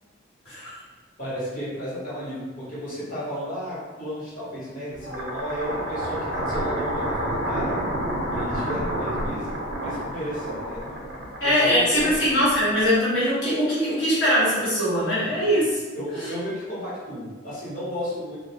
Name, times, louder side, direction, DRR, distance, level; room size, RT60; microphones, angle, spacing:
voice 1, 0.5-0.8 11.4-15.7, equal, 75° left, -10 dB, 1.2 m, -21 dB
voice 2, 1.2-7.8 8.3-11.1 11.4-12.1 15.9-18.4, equal, 45° left, -9 dB, 1.0 m, -33 dB
sound 1, 4.9-13.2, right 1 dB, 60° right, 0.5 m, -29 dB
2.3 x 2.0 x 2.7 m, 1.3 s
head